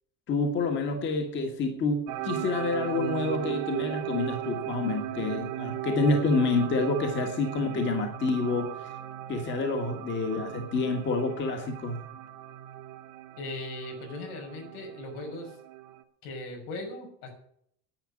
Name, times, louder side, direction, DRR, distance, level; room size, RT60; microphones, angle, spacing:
voice 1, 0.3-8.9 9.3-12.0, left 3 dB, 25° left, 4 dB, 1.7 m, -28 dB
sound 1, 2.1-16.0, right 13 dB, 60° right, 1.6 m, -37 dB
voice 2, 13.4-15.5 16.2-17.3, left 2 dB, 85° left, 2 dB, 6.3 m, -38 dB
10.5 x 9.4 x 8.6 m, 0.69 s
cardioid pair, 180°, 44 cm